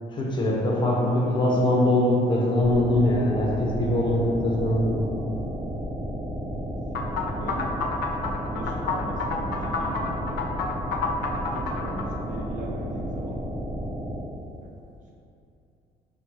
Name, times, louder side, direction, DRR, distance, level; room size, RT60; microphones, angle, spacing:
voice 1, 0.1-5.1, left 1 dB, 25° left, -4 dB, 0.8 m, -22 dB
voice 2, 0.8-1.6 6.5-6.8 7.0-7.7 8.2-10.5 11.3-13.4 14.6-14.7, right 2 dB, 50° right, -1 dB, 0.5 m, -38 dB
sound 1, 2.6-14.2, equal, 30° right, 1.0 m, -32 dB
sound 2, 6.9-12.1, left 4 dB, 85° left, 0.4 m, -30 dB
5.3 x 2.3 x 3.1 m, 2.7 s
cardioid pair, 110°, 17 cm